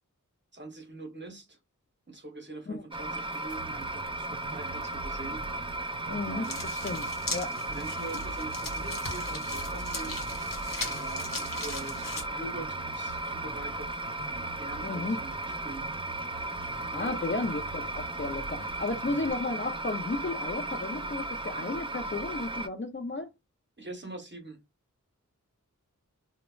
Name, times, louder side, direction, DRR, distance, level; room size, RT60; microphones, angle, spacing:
voice 1, 0.5-1.6 2.1-5.4 6.0-6.6 7.7-10.2 10.8-14.0 14.4-15.8 16.4-17.2 23.8-24.6, right 2 dB, 35° right, 0.8 m, -44 dB
sound 1, 2.9-22.7, right 2 dB, 15° right, 0.3 m, -35 dB
sound 2, 3.3-19.3, right 6 dB, 75° right, 0.6 m, -48 dB
voice 2, 6.1-6.5 6.8-7.6 14.8-15.2 16.9-23.3, left 2 dB, 40° left, 0.5 m, -33 dB
sound 3, 6.4-12.2, left 2 dB, 85° left, 0.9 m, -39 dB
3.1 x 2.1 x 2.3 m
wide cardioid pair, 50°, 32 cm